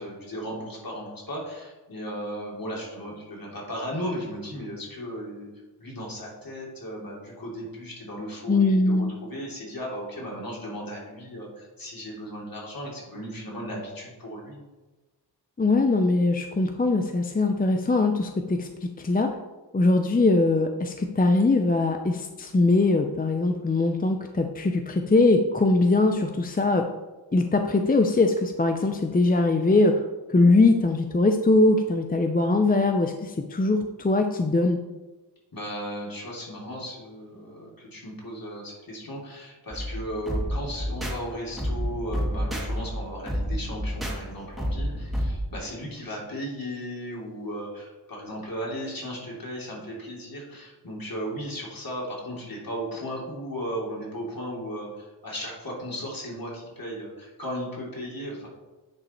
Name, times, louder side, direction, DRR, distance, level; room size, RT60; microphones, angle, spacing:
voice 1, 0.0-5.5 5.8-14.6 35.5-58.5, equal, 55° left, -3 dB, 3.0 m, -36 dB
voice 2, 8.5-9.1 15.6-18.7 19.0-19.3 19.7-26.8 27.3-29.9 30.3-34.8, left 2 dB, 20° left, 5 dB, 0.6 m, -21 dB
sound 1, 39.7-45.4, equal, ahead, 2.0 m, -30 dB
9.7 x 5.0 x 4.4 m, 1.2 s
wide cardioid pair, 80°, 41 cm